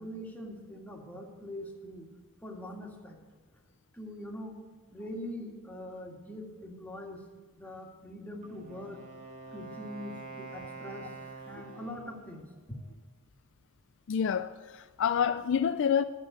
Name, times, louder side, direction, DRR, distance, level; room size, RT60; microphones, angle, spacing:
voice 1, 0.0-2.1 2.4-3.2 3.9-4.6 4.9-7.2 7.6-9.0 9.5-12.9, left 1 dB, 5° left, 2.0 m, -43 dB
Wind instrument woodwind instrument, 8.4-12.3, right 4 dB, 35° right, 2.1 m, -46 dB
voice 2, 14.1-16.0, left 7 dB, 55° left, 0.3 m, -28 dB
12.0 x 8.3 x 9.2 m
head